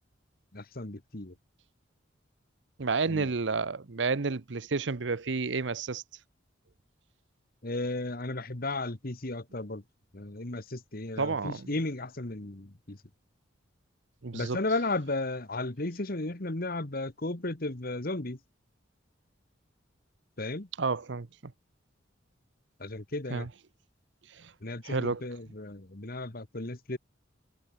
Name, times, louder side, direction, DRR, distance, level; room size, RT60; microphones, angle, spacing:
voice 1, 0.5-1.3 3.1-3.3 7.6-9.8 10.1-13.0 14.3-18.4 20.4-20.7 22.8-23.5 24.6-27.0, left 2 dB, 50° left, 1.7 m, -34 dB
voice 2, 2.8-6.0 11.2-11.7 14.2-14.6 20.8-21.5 23.3-23.5 24.4-24.5 24.8-25.3, right 4 dB, 70° right, 0.8 m, -31 dB
head